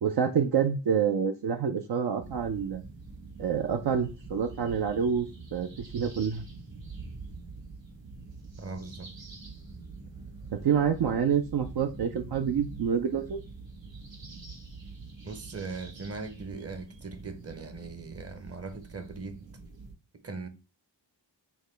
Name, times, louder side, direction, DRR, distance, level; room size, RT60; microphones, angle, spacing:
voice 1, 0.0-2.8 3.4-6.4 10.5-13.4, right 7 dB, 65° right, 0.5 m, -27 dB
sound 1, 2.2-19.9, right 3 dB, 85° right, 1.3 m, -45 dB
voice 2, 8.6-9.1 15.2-19.4 20.1-20.5, right 4 dB, 35° right, 0.8 m, -40 dB
5.5 x 2.2 x 3.3 m
wide cardioid pair, 55°, 44 cm